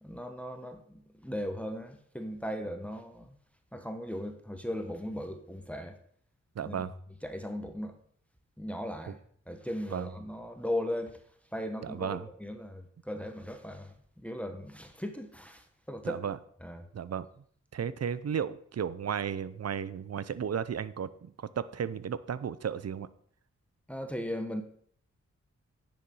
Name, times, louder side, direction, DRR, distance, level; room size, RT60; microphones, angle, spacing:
voice 1, 0.0-3.4 3.7-6.0 6.6-6.9 7.2-8.0 8.6-9.2 9.5-11.2 11.5-16.2 16.6-16.9 23.9-24.6, left 1 dB, 5° left, 6 dB, 1.4 m, -38 dB
voice 2, 6.5-6.9 9.9-10.1 11.8-12.3 16.0-16.4 16.9-17.3 17.7-23.1, right 8 dB, 60° right, 16 dB, 0.7 m, -34 dB
9.7 x 7.2 x 5.5 m, 0.62 s
cardioid pair, 65°, 29 cm